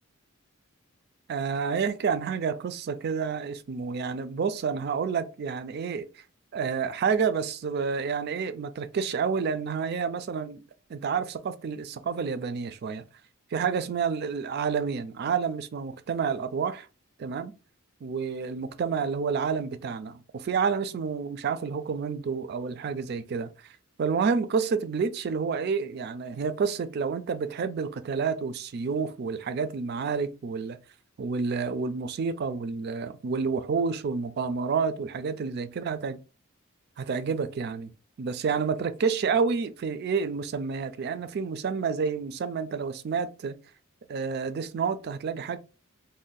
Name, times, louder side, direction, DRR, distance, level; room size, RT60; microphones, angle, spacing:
voice 1, 1.3-6.1 6.5-10.6 10.9-13.0 13.5-16.9 17.2-17.5 18.0-23.5 24.0-30.8 31.2-36.2 37.0-37.9 38.2-43.6 44.1-45.6, right 5 dB, 45° right, 0.3 m, -29 dB
2.6 x 2.1 x 3.8 m
head